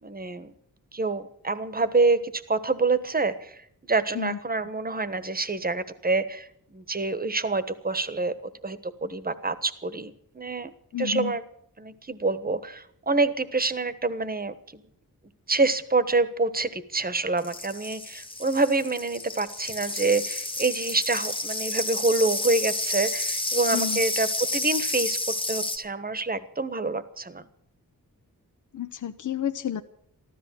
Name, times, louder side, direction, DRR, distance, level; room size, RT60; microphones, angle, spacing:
voice 1, 0.0-0.5 0.9-3.5 3.9-6.5 6.7-8.3 8.6-10.7 11.0-11.4 11.8-14.8 15.5-25.2 25.5-27.4, right 3 dB, 25° right, 13 dB, 1.3 m, -26 dB
voice 2, 10.9-11.4 23.7-24.0 28.7-29.8, left 9 dB, 55° left, 9 dB, 0.8 m, -30 dB
sound 1, 17.4-25.8, left 2 dB, 15° left, 1.3 m, -30 dB
14.0 x 13.5 x 7.4 m, 0.68 s
wide cardioid pair, 90°, 36 cm